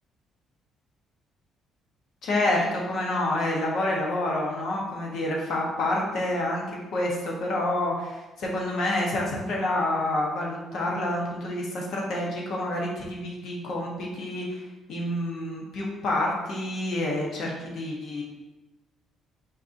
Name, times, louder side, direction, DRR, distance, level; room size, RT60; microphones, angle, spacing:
voice 1, 2.2-6.6 6.9-18.2, left 1 dB, 65° left, -2 dB, 1.0 m, -28 dB
4.2 x 3.8 x 2.6 m, 1.1 s
cardioid pair, 120°, 0 cm